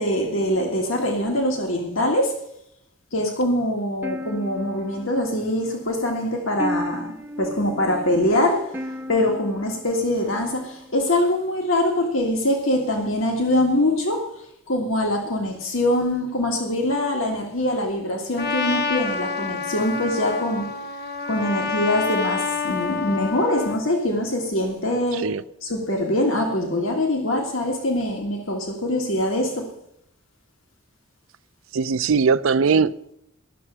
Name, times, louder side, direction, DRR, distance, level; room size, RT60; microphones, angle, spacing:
voice 1, 0.0-2.4 3.1-14.3 14.7-20.7 21.2-25.3 25.6-29.7, left 1 dB, 90° left, 1.8 m, -23 dB
sound 1, 4.0-11.1, equal, 10° right, 0.7 m, -35 dB
Trumpet, 18.4-23.8, left 4 dB, 55° left, 0.8 m, -28 dB
voice 2, 31.7-33.1, right 5 dB, 75° right, 0.5 m, -20 dB
12.5 x 6.8 x 7.3 m
head